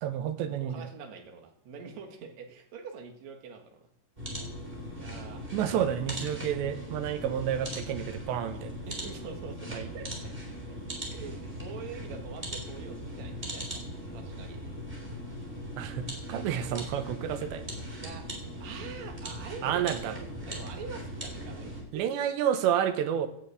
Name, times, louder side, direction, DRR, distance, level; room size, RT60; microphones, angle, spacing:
voice 1, 0.0-0.8 5.5-8.7 9.7-9.9 15.8-17.6 19.6-20.1 21.9-23.3, right 9 dB, 85° right, 8 dB, 3.3 m, -30 dB
voice 2, 0.6-3.9 4.9-5.5 8.9-10.3 10.7-10.8 11.1-13.9 14.1-14.6 18.0-20.2 20.4-22.1, right 6 dB, 50° right, 3 dB, 2.5 m, -45 dB
sound 1, 4.2-21.8, equal, 15° right, 3.2 m, -39 dB
10.5 x 9.9 x 8.5 m, 0.73 s
omnidirectional pair, 5.0 m